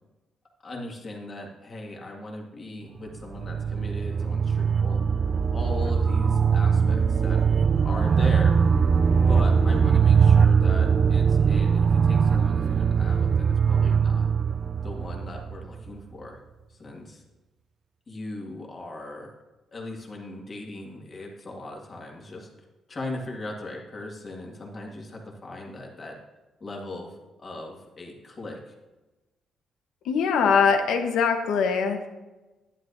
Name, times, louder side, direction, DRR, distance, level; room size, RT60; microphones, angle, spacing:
voice 1, 0.6-5.0 5.5-7.4 7.8-8.6 9.3-14.3 14.8-16.4 16.7-17.2 18.1-19.3 19.7-22.5 22.9-26.2 26.6-28.7, left 2 dB, 35° left, 0 dB, 1.9 m, -38 dB
sound 1, 3.1-15.9, right 6 dB, 40° right, 0.3 m, -21 dB
voice 2, 30.0-32.1, left 6 dB, 85° left, 5 dB, 1.0 m, -22 dB
11.0 x 10.0 x 2.7 m, 1.1 s
cardioid pair, 115°, 0 cm